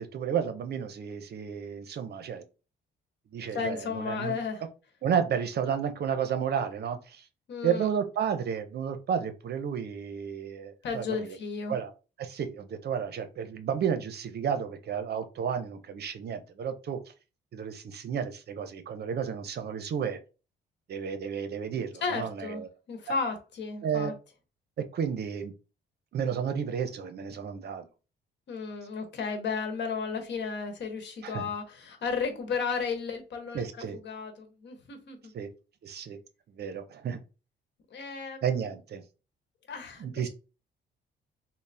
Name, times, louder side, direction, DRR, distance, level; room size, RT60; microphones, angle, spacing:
voice 1, 0.0-2.4 3.3-4.4 5.0-7.2 7.6-11.4 11.7-11.9 12.2-17.0 17.5-20.2 20.9-22.7 23.8-24.1 24.9-25.5 26.1-27.9 31.2-31.5 33.5-34.0 35.3-35.5 35.8-36.2 36.6-37.2 38.4-39.0 40.0-40.3, right 7 dB, 55° right, 9 dB, 0.6 m, -32 dB
voice 2, 3.5-4.6 7.5-7.9 10.8-11.7 22.0-24.1 28.5-35.3 37.9-38.4 39.7-40.3, left 5 dB, 60° left, 6 dB, 1.0 m, -34 dB
4.0 x 2.0 x 3.3 m, 0.33 s
cardioid pair, 90°, 20 cm